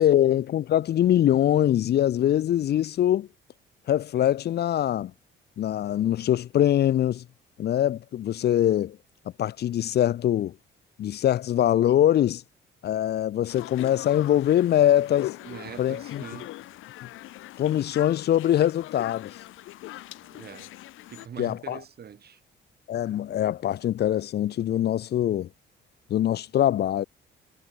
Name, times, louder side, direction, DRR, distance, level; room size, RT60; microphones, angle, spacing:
voice 1, 0.0-3.3 3.9-5.1 5.6-7.2 7.6-9.0 9.4-10.5 11.0-12.4 12.8-15.4 15.8-16.2 17.6-19.3 21.4-21.8 22.9-25.5 26.1-27.0, left 11 dB, 55° left, 0.5 m, -23 dB
sound 1, 13.5-21.3, left 16 dB, 90° left, 1.6 m, -41 dB
voice 2, 15.4-16.5 20.3-20.7 21.1-22.4, right 8 dB, 55° right, 3.4 m, -43 dB
cardioid pair, 90°, 20 cm